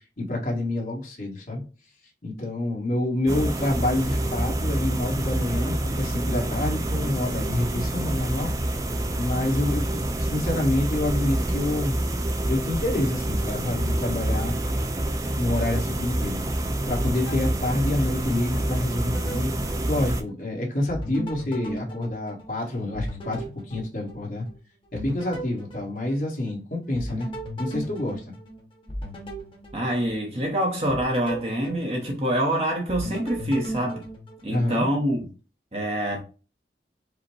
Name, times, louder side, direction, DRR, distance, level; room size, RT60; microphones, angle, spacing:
voice 1, 0.2-1.6 2.2-8.5 9.2-12.0 12.5-14.6 15.4-19.5 19.9-24.5 24.9-28.3 34.5-34.9, left 1 dB, 50° left, 1.4 m, -27 dB
sound 1, 3.3-20.2, right 1 dB, 20° right, 0.4 m, -27 dB
sound 2, 16.9-18.5 18.9-20.5 20.9-24.5 25.0-26.5 26.9-30.4 30.9-32.5 32.9-34.9, right 1 dB, 30° left, 1.3 m, -37 dB
voice 2, 29.7-34.0 34.4-35.3 35.7-36.2, right 1 dB, 35° right, 0.8 m, -26 dB
5.0 x 2.1 x 4.6 m
head